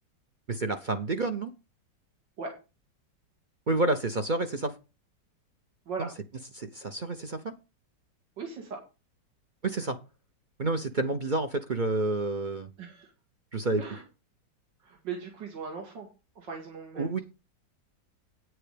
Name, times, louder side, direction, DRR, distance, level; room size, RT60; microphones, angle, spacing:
voice 1, 0.5-1.5 3.7-4.8 6.0-6.1 6.5-7.5 9.6-10.0 10.6-12.7 13.5-13.8 17.0-17.2, right 2 dB, 50° right, 8 dB, 0.6 m, -29 dB
voice 2, 8.4-8.8 12.8-13.1 13.8-14.0 14.8-16.1 16.4-17.2, right 5 dB, 80° right, 1 dB, 2.9 m, -38 dB
9.3 x 7.8 x 5.0 m, 0.30 s
omnidirectional pair, 1.9 m